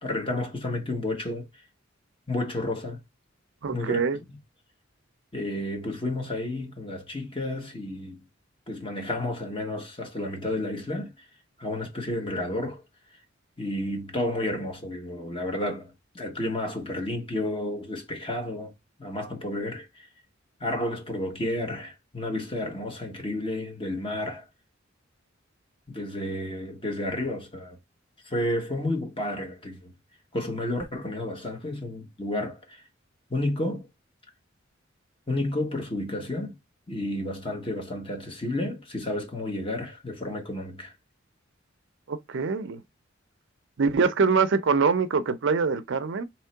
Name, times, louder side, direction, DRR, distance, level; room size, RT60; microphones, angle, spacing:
voice 1, 0.0-1.5 2.3-3.0 3.7-4.0 4.3-4.4 5.3-8.2 8.7-11.1 11.6-12.8 13.6-18.7 19.0-20.1 20.6-24.4 25.9-27.8 28.2-29.9 30.3-32.8 33.3-33.9 35.3-36.5 36.9-40.9, left 1 dB, 25° left, 1.3 m, -31 dB
voice 2, 3.6-4.2 42.1-42.8 43.8-46.2, right 5 dB, 65° right, 0.5 m, -24 dB
3.7 x 3.1 x 4.4 m
head